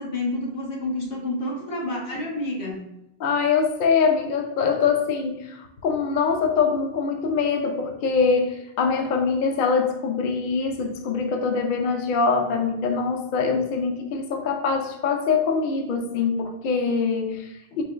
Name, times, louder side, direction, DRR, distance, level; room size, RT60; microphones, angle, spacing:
voice 1, 0.0-2.9 17.7-17.8, left 1 dB, 85° left, -2 dB, 1.3 m, -29 dB
voice 2, 3.2-17.8, left 5 dB, 60° left, 4 dB, 0.6 m, -23 dB
4.8 x 2.9 x 2.4 m, 0.87 s
omnidirectional pair, 1.1 m